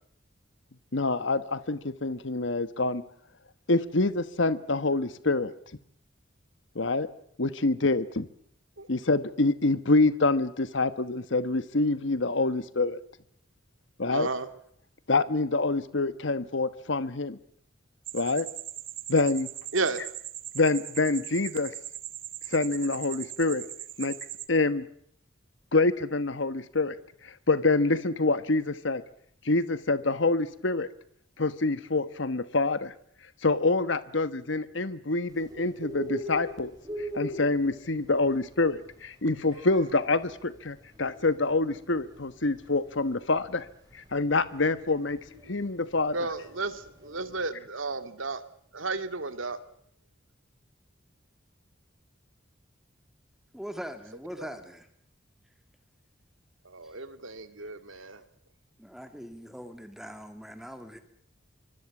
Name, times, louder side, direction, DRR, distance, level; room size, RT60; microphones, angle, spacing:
voice 1, 0.9-3.0 3.7-5.5 6.7-7.1 7.4-8.3 8.9-13.0 14.0-14.3 15.1-17.4 18.1-18.5 19.1-19.5 20.5-21.7 22.5-23.6 24.0-24.2 24.5-24.8 25.7-27.0 27.2-29.0 29.4-30.9 31.4-32.9 33.4-36.7 37.0-43.7 43.9-45.2 45.5-46.1, left 3 dB, 70° left, 1.2 m, -26 dB
voice 2, 14.1-14.5 19.7-20.0 46.1-48.4 48.7-49.6 54.4-54.5 56.6-58.2, right 3 dB, 90° right, 2.3 m, -33 dB
sound 1, 18.1-24.5, right 13 dB, 45° right, 1.5 m, -40 dB
Bird, 35.3-47.4, equal, 20° right, 6.9 m, -42 dB
voice 3, 53.5-54.9 56.8-56.9 57.6-58.0 58.8-61.0, equal, ahead, 2.0 m, -42 dB
25.5 x 24.5 x 7.2 m
head